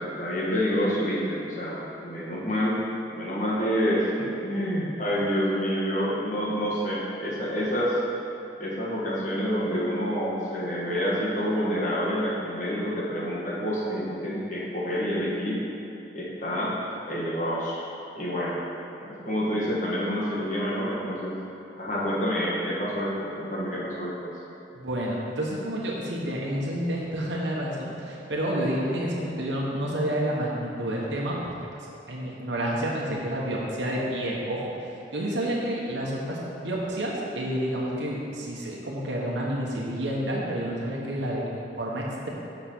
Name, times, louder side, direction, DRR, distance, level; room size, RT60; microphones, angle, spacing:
voice 1, 0.0-2.8 3.1-8.0 8.6-15.6 16.1-16.7 17.1-17.8 18.1-18.6 19.0-21.4 21.8-24.3, equal, 45° left, -5 dB, 1.5 m, -28 dB
voice 2, 24.7-31.5 32.1-34.7 35.1-42.3, right 1 dB, 85° right, -4 dB, 1.1 m, -29 dB
7.1 x 5.8 x 4.5 m, 2.9 s
head